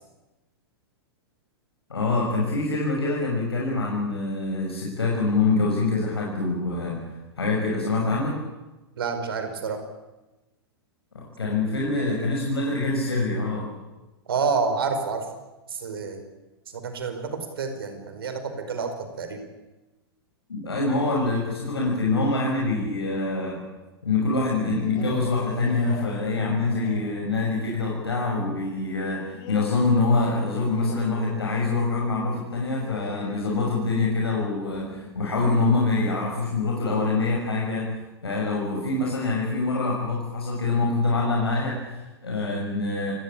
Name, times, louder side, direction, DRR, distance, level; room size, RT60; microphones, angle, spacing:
voice 1, 1.9-7.0 7.4-8.4 11.1-13.7 20.5-23.6 24.0-37.9 38.2-43.1, left 3 dB, 70° left, -1 dB, 6.2 m, -25 dB
voice 2, 9.0-9.8 14.3-15.3 15.7-16.2 16.7-19.4, right 5 dB, 60° right, 8 dB, 4.9 m, -28 dB
sound 1, 24.8-35.9, left 8 dB, 35° left, 2.7 m, -43 dB
29.0 x 18.5 x 8.6 m, 1.1 s
figure-of-eight pair, 100°, 14 cm